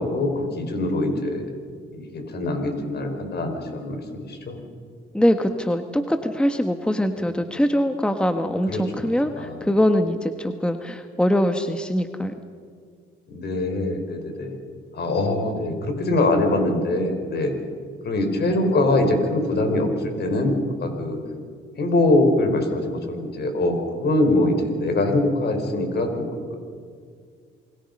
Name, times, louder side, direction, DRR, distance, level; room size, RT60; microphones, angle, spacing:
voice 1, 0.0-1.4 1.9-4.6 8.7-9.1 9.4-9.7 13.3-14.6 14.9-17.5 18.0-21.2 21.8-26.3, left 2 dB, 55° left, 5 dB, 5.0 m, -23 dB
voice 2, 5.1-12.3, equal, 5° left, 7 dB, 1.3 m, -22 dB
28.5 x 21.5 x 5.4 m, 2.1 s
cardioid pair, 90°, 20 cm